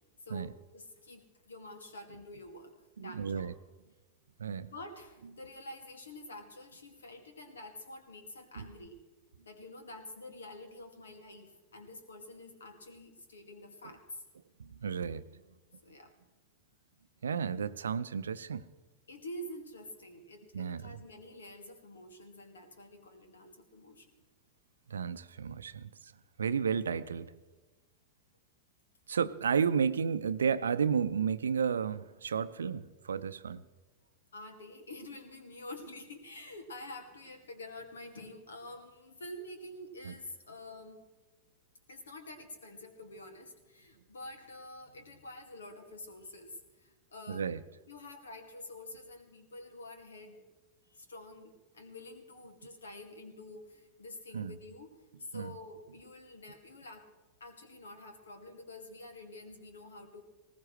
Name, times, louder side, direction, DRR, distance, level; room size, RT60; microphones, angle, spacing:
voice 1, 0.2-3.5 4.7-9.0 9.5-14.2 15.8-16.1 19.1-24.2 34.3-41.0 41.9-47.5 47.9-50.5 50.9-57.1 57.4-60.2, left 1 dB, 70° left, 6 dB, 2.1 m, -48 dB
voice 2, 3.0-3.5 4.4-4.7 8.6-8.7 14.6-15.2 17.2-18.6 20.5-21.0 24.9-25.9 26.4-27.3 29.1-33.6 40.0-40.1 47.3-47.6 54.3-54.5 55.3-55.5, right 6 dB, 70° right, 14 dB, 0.6 m, -32 dB
20.0 x 18.5 x 3.3 m, 1.2 s
figure-of-eight pair, 90°, 0 cm